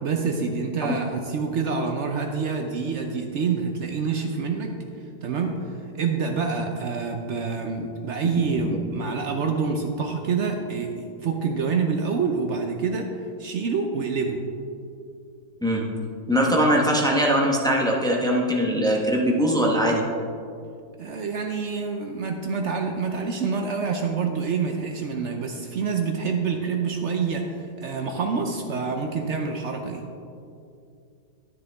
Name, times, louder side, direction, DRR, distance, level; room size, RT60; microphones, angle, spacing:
voice 1, 0.0-4.8 5.2-5.6 6.0-13.1 13.4-14.4 21.0-30.0, right 5 dB, 65° right, 4 dB, 0.7 m, -27 dB
voice 2, 16.3-20.0, equal, 5° left, -1 dB, 0.6 m, -21 dB
9.8 x 9.7 x 3.4 m, 2.5 s
omnidirectional pair, 1.9 m